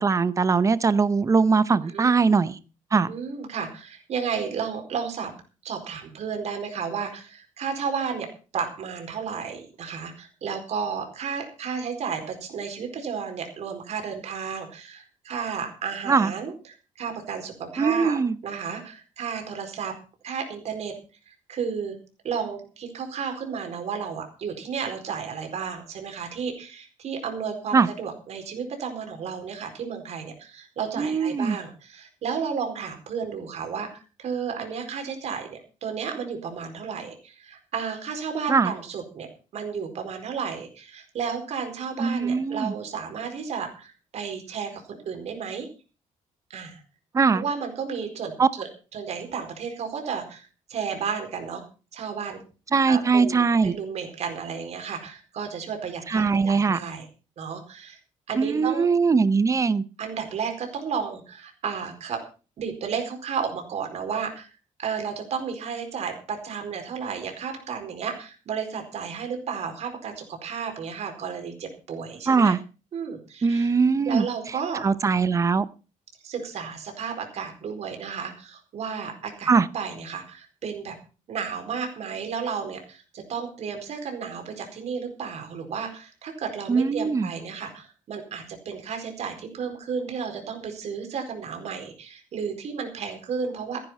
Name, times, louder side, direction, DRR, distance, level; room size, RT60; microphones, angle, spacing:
voice 1, 0.0-2.6 2.9-3.1 16.1-16.3 17.8-18.4 27.7-27.9 31.0-31.6 38.5-38.7 42.0-42.7 47.1-47.4 48.4-48.5 52.7-53.8 56.1-56.8 58.4-59.8 72.3-72.6 73.4-74.3 74.8-75.7 79.5-79.7 86.7-87.3, right 5 dB, 25° right, 0.8 m, -21 dB
voice 2, 3.1-5.3 5.6-8.3 8.5-18.2 18.4-19.9 20.2-20.9 21.3-22.0 22.2-39.3 39.5-45.7 46.5-46.8 47.3-51.6 51.9-52.4 52.9-57.0 57.4-58.0 58.3-58.9 60.0-62.2 62.6-72.6 72.9-73.7 74.0-74.8 76.2-80.9 81.3-93.8, right 6 dB, 55° right, 4.5 m, -33 dB
14.5 x 10.5 x 5.6 m
cardioid pair, 165°, 14 cm